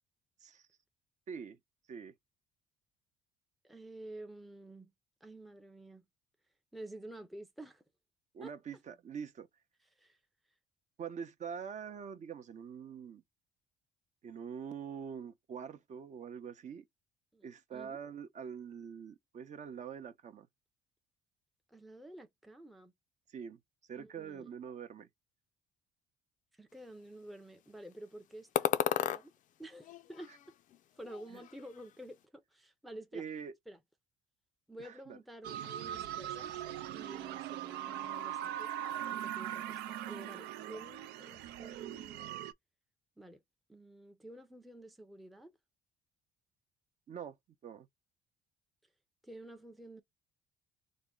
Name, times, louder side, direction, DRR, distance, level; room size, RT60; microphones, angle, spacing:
voice 1, 1.3-1.6 1.9-2.1 8.3-9.5 11.0-13.2 14.2-16.8 17.4-20.5 23.3-23.6 23.9-25.1 31.3-31.4 33.1-33.5 34.8-35.2 47.1-47.4 47.6-47.9, right 7 dB, 45° right, 0.6 m, -44 dB
voice 2, 3.6-4.9 5.2-6.0 6.7-7.8 8.4-8.5 10.0-10.2 17.3-18.0 21.7-22.9 24.0-24.5 26.5-29.3 29.6-30.3 31.0-33.2 33.7-33.8 34.7-36.6 36.9-42.4 43.2-43.4 43.7-45.5 49.2-50.0, right 1 dB, ahead, 0.5 m, -50 dB
sound 1, 28.5-29.2 29.8-30.8 31.0-31.8, left 11 dB, 50° left, 0.4 m, -34 dB
sound 2, 35.4-42.5, right 11 dB, 85° right, 0.5 m, -40 dB
3.5 x 2.1 x 3.7 m
cardioid pair, 110°, 17 cm